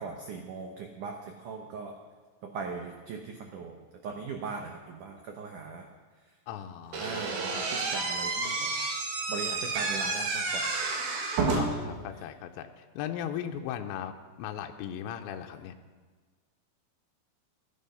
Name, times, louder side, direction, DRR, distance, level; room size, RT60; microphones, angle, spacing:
voice 1, 0.0-1.9 2.4-3.8 4.0-5.9 7.0-8.7 9.3-10.7, right 5 dB, 85° right, 3 dB, 1.8 m, -39 dB
voice 2, 6.5-7.3 11.6-14.1 14.4-15.7, left 10 dB, 85° left, 5 dB, 2.9 m, -37 dB
Slam / Squeak, 6.9-11.9, right 3 dB, 65° right, 3.4 m, -30 dB
15.0 x 11.5 x 5.6 m, 1.4 s
omnidirectional pair, 5.2 m